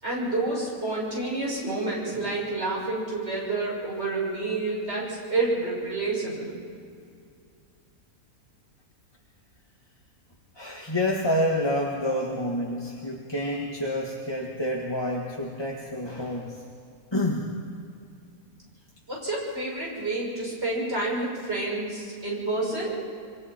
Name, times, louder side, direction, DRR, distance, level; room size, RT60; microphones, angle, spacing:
voice 1, 0.0-6.6 19.1-22.9, right 2 dB, 45° right, -4 dB, 6.9 m, -29 dB
voice 2, 10.6-16.6 17.1-17.5, left 1 dB, 20° left, -2 dB, 1.6 m, -28 dB
28.0 x 23.0 x 4.5 m, 2.3 s
omnidirectional pair, 1.5 m